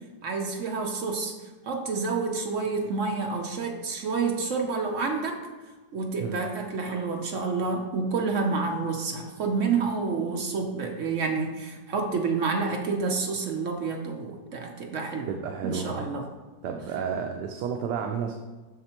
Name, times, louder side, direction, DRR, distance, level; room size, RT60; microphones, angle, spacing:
voice 1, 0.2-1.4 1.6-5.4 5.9-15.3 15.6-16.3, right 4 dB, 60° right, 2 dB, 0.8 m, -29 dB
voice 2, 15.3-16.1 16.6-18.3, right 7 dB, 75° right, 3 dB, 1.2 m, -31 dB
7.6 x 6.4 x 3.0 m, 1.2 s
omnidirectional pair, 1.9 m